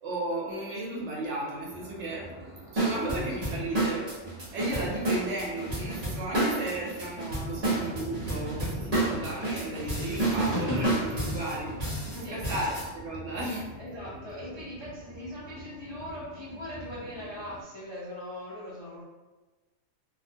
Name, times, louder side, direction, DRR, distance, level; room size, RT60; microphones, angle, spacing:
voice 1, 0.0-2.3 2.7-4.1 4.5-11.7 12.0-13.8, right 1 dB, 65° right, -4 dB, 0.9 m, -34 dB
sound 1, 1.7-17.6, equal, ahead, 1.0 m, -43 dB
sound 2, 2.8-12.9, right 2 dB, 40° right, 0.7 m, -30 dB
voice 2, 13.8-19.0, left 1 dB, 40° left, -10 dB, 0.4 m, -40 dB
2.4 x 2.1 x 2.6 m, 1.2 s
omnidirectional pair, 1.3 m